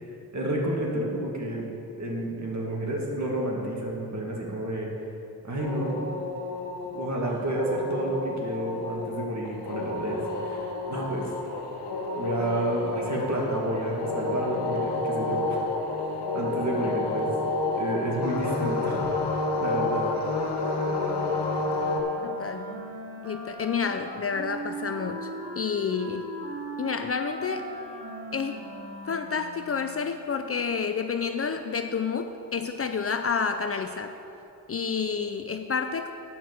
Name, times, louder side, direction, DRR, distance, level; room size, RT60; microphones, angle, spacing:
voice 1, 0.3-1.7 2.0-4.9 5.4-6.0 6.9-10.6 10.9-11.3 12.2-15.7 16.3-17.3 17.7-19.1 19.6-20.0, right 1 dB, 45° right, -2 dB, 2.2 m, -30 dB
sound 1, 5.6-22.0, left 3 dB, 85° left, 1.3 m, -30 dB
Wind instrument woodwind instrument, 21.6-30.1, right 1 dB, 70° right, 2.5 m, -39 dB
voice 2, 22.2-22.7 23.2-25.3 25.6-26.3 26.8-27.7 28.3-28.6 29.0-34.2 34.7-36.1, left 5 dB, 35° left, 7 dB, 0.5 m, -29 dB
9.4 x 5.9 x 7.1 m, 2.7 s
cardioid pair, 80°, 39 cm